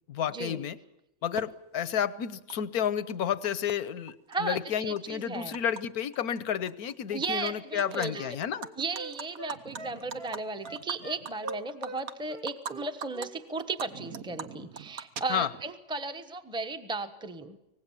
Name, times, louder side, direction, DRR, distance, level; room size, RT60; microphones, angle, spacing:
voice 1, 0.1-0.8 1.2-8.7 15.3-15.5, left 9 dB, 85° left, 16 dB, 1.5 m, -31 dB
Animal, 1.4-1.5 2.5-2.6 2.8-3.7 4.1-5.8 6.1-6.4 6.7-7.5 7.8-8.1 8.4-12.7 13.0-13.3 13.6-15.7, right 7 dB, 75° right, 1.6 m, -41 dB
voice 2, 4.3-5.6 7.1-8.3 8.8-17.6, right 3 dB, 5° right, 8 dB, 1.1 m, -35 dB
Wind instrument woodwind instrument, 7.3-12.0 12.3-13.3 13.6-13.8, right 2 dB, 40° right, 1.9 m, -43 dB
24.5 x 19.0 x 7.3 m, 0.90 s
omnidirectional pair, 1.5 m